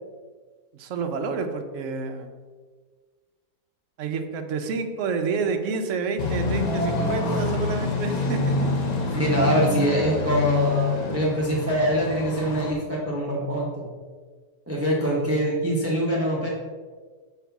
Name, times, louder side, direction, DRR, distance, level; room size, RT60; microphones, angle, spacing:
voice 1, 0.7-2.3 4.0-8.8, right 4 dB, 60° right, 5 dB, 0.9 m, -29 dB
sound 1, 6.2-12.7, left 3 dB, 80° left, 0.3 m, -26 dB
voice 2, 9.1-13.9 14.7-16.5, right 1 dB, 15° right, -5 dB, 0.6 m, -24 dB
7.1 x 3.3 x 5.8 m, 1.5 s
omnidirectional pair, 1.9 m